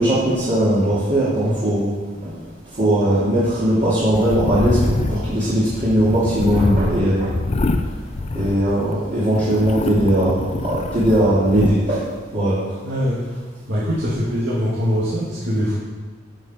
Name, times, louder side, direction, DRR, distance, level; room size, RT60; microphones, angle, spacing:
voice 1, 0.0-1.9 2.2-2.4 2.7-7.3 8.3-12.6, right 1 dB, 40° right, -10 dB, 2.6 m, -19 dB
sound 1, 4.1-8.9 9.3-11.7, left 2 dB, 35° left, 0.5 m, -25 dB
voice 2, 12.8-13.2 13.7-15.8, equal, 75° right, -8 dB, 2.1 m, -22 dB
13.0 x 6.6 x 4.4 m, 1.5 s
head